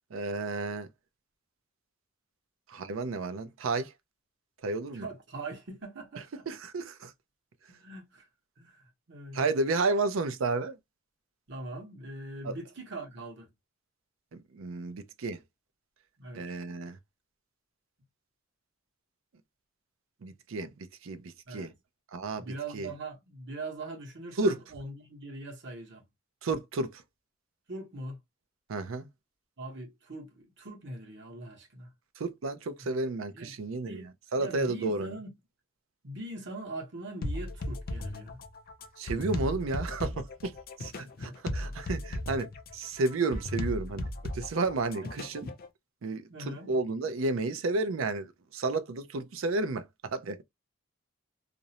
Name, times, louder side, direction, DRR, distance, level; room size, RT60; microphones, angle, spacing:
voice 1, 0.1-0.9 2.7-3.9 4.6-5.1 6.5-7.1 9.3-10.8 12.4-12.6 14.3-15.4 16.3-17.0 20.2-21.7 22.1-22.5 22.7-22.9 24.4-24.6 26.4-27.0 28.7-29.1 32.2-35.1 39.0-45.5 46.0-50.4, right 3 dB, 75° right, 0.5 m, -32 dB
voice 2, 4.9-6.2 7.7-8.3 8.6-9.5 11.5-13.5 16.2-16.6 21.5-21.7 22.4-26.0 27.7-28.2 29.6-31.9 32.8-32.9 33.3-33.5 33.8-34.1 34.4-35.3 36.0-38.4 41.0-41.4 45.0-45.1 46.3-46.7, right 2 dB, 60° right, 1.0 m, -42 dB
sound 1, 37.2-45.7, left 1 dB, 45° left, 0.4 m, -36 dB
2.5 x 2.0 x 2.7 m
head